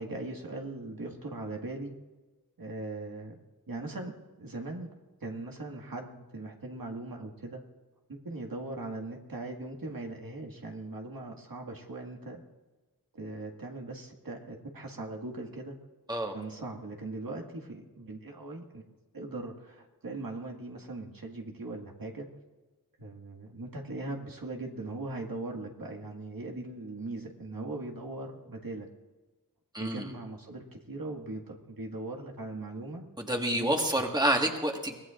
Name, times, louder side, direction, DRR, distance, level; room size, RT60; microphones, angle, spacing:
voice 1, 0.0-1.9 2.6-3.4 3.7-4.9 5.2-7.6 8.1-12.4 13.1-15.7 16.3-18.8 19.1-22.3 23.0-28.9 29.8-33.0 33.5-33.9, right 2 dB, 75° right, 1 dB, 2.0 m, -40 dB
voice 2, 29.7-30.1 33.2-35.0, right 1 dB, 10° right, 2 dB, 1.7 m, -28 dB
24.0 x 18.5 x 2.6 m, 1.2 s
wide cardioid pair, 75°, 35 cm